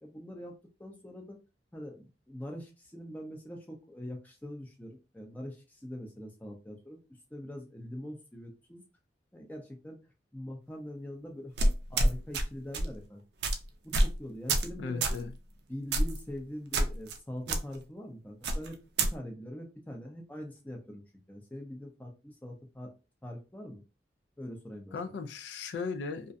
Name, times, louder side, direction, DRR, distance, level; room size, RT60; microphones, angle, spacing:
voice 1, 0.0-1.4 1.7-7.0 7.3-8.8 9.3-10.0 10.3-13.2 13.8-15.1 15.7-21.0 21.3-22.9 23.2-23.8 24.4-25.0, equal, 10° left, 0.5 m, -43 dB
sound 1, 11.6-12.4 12.7-12.9 13.4-13.6 13.9-14.2 14.5-14.7 15.0-15.2 15.9-16.2 16.7-17.2 17.5-17.6 18.4-19.1, right 1 dB, 70° right, 0.4 m, -26 dB
voice 2, 14.8-15.3 24.9-26.3, left 4 dB, 75° left, 0.3 m, -36 dB
2.5 x 2.2 x 2.5 m
head